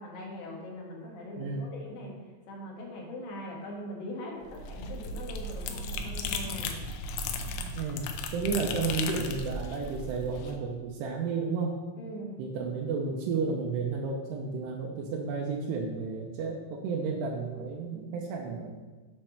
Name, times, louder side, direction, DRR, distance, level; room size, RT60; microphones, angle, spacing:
voice 1, 0.0-2.2 2.5-6.8 12.0-12.4, left 1 dB, 65° left, -2 dB, 2.7 m, -41 dB
voice 2, 1.4-1.7 7.5-8.1 8.3-11.8 12.4-18.8, right 4 dB, 85° right, -1 dB, 2.7 m, -32 dB
sound 1, 4.4-10.5, left 3 dB, 80° left, 2.7 m, -36 dB
7.8 x 4.4 x 5.8 m, 1.3 s
omnidirectional pair, 5.0 m